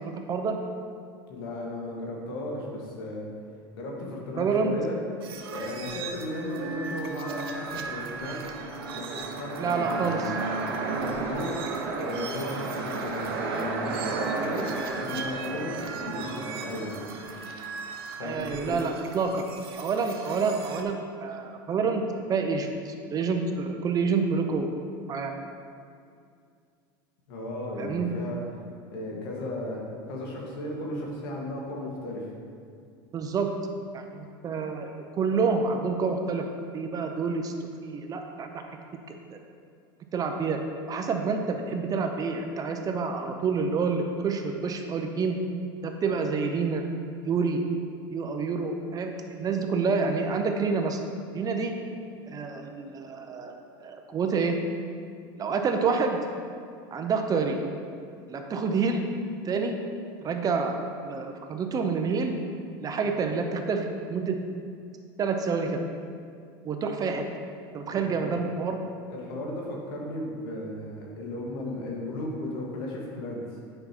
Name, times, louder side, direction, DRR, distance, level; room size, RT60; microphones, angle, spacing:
voice 1, 0.0-0.6 4.4-4.7 9.6-10.3 18.2-19.5 19.8-22.0 22.3-24.7 25.1-25.3 27.8-28.1 33.1-33.5 33.9-37.5 37.8-38.6 39.1-39.4 40.1-40.6 40.9-45.4 45.8-46.8 47.2-47.6 48.1-51.0 51.3-51.7 52.3-53.5 53.8-54.6 55.4-56.2 56.9-57.6 58.3-59.1 59.4-59.8 60.2-62.4 62.8-64.4 65.2-65.8 66.6-67.2 67.7-68.8, right 5 dB, 30° right, 5 dB, 0.6 m, -28 dB
voice 2, 1.3-3.3 3.7-5.0 5.2-10.4 10.8-11.5 12.0-14.7 15.0-17.0 18.2-18.9 27.3-28.4 28.9-29.8 30.1-32.3 67.9-68.4 69.1-73.5, left 1 dB, 75° left, -2 dB, 1.7 m, -35 dB
sound 1, 5.2-20.8, right 4 dB, 90° right, 0.7 m, -39 dB
sound 2, 7.3-18.7, right 3 dB, 75° right, 1.1 m, -34 dB
8.8 x 5.4 x 2.9 m, 2.3 s
supercardioid pair, 110°, 12 cm